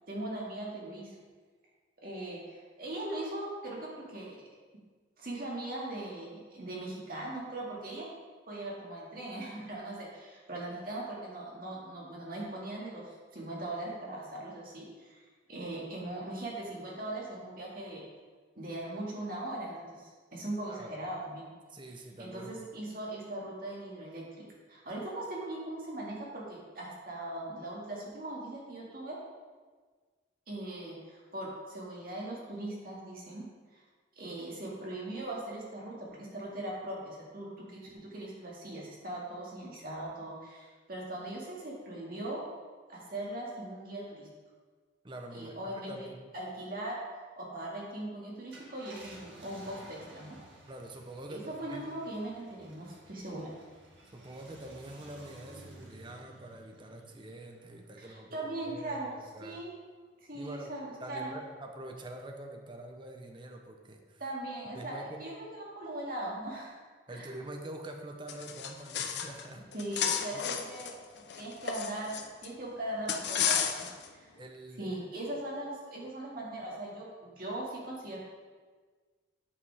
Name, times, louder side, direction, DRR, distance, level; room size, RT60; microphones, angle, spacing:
voice 1, 0.1-1.1 2.0-4.4 5.2-8.1 8.5-15.2 15.5-18.0 18.6-21.5 22.2-29.2 30.5-33.4 33.7-33.8 34.2-42.4 42.9-44.3 45.3-46.1 46.3-47.0 47.4-50.4 51.3-53.5 58.0-59.1 59.4-59.7 60.2-61.4 64.2-66.8 67.1-67.3 69.7-71.0 71.4-74.3 74.8-78.2, right 1 dB, 50° right, -4 dB, 2.0 m, -40 dB
voice 2, 21.7-22.5 45.0-45.6 45.8-46.3 50.7-51.8 54.1-58.4 58.7-59.6 60.3-60.7 61.0-64.2 64.7-65.2 67.1-69.6 70.3-70.5 74.4-75.0, right 1 dB, 25° right, 3 dB, 0.7 m, -45 dB
Car, 48.4-59.2 59.7-59.8 61.8-62.1, right 1 dB, 75° right, 1.7 m, -54 dB
sound 1, 68.3-69.4 69.7-72.5 73.1-74.1, left 8 dB, 60° left, 0.6 m, -32 dB
8.5 x 5.1 x 4.8 m, 1.5 s
head